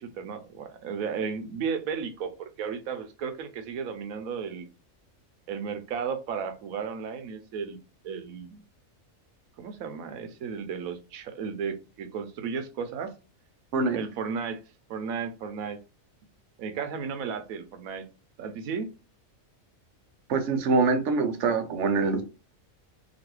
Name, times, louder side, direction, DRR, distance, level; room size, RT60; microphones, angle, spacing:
voice 1, 0.0-4.7 5.5-7.8 8.0-8.6 9.6-13.1 13.9-14.6 14.9-15.8 16.6-18.1 18.4-18.9, right 6 dB, 90° right, 1.1 m, -34 dB
voice 2, 20.3-22.2, right 4 dB, 65° right, 0.9 m, -24 dB
3.0 x 2.5 x 2.9 m
omnidirectional pair, 1.4 m